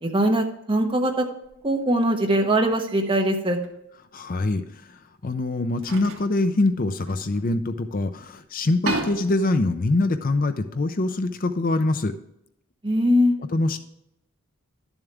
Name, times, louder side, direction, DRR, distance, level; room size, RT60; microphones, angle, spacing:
voice 1, 0.0-1.2 1.6-3.6 12.8-13.3, equal, 25° right, 2 dB, 1.2 m, -21 dB
sound 1, 1.4-1.6 2.9-3.2 3.6-3.7 5.0-5.1 5.7-7.9 8.2-8.3 8.6-11.1, right 2 dB, 65° right, 2.0 m, -35 dB
voice 2, 4.1-12.1 13.5-13.8, left 2 dB, 40° left, 10 dB, 0.5 m, -24 dB
12.0 x 7.2 x 3.4 m, 0.81 s
head